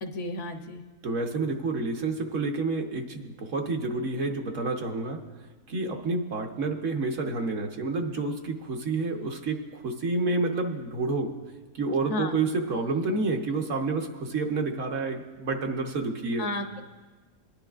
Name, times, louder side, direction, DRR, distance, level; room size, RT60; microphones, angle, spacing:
voice 1, 0.0-0.8 12.1-12.4 16.4-16.8, left 2 dB, 60° left, 6 dB, 0.9 m, -32 dB
voice 2, 1.0-5.2 5.7-9.6 9.8-11.3 11.8-16.5, right 3 dB, 60° right, 3 dB, 1.2 m, -29 dB
22.5 x 10.5 x 2.4 m, 1.3 s
omnidirectional pair, 1.6 m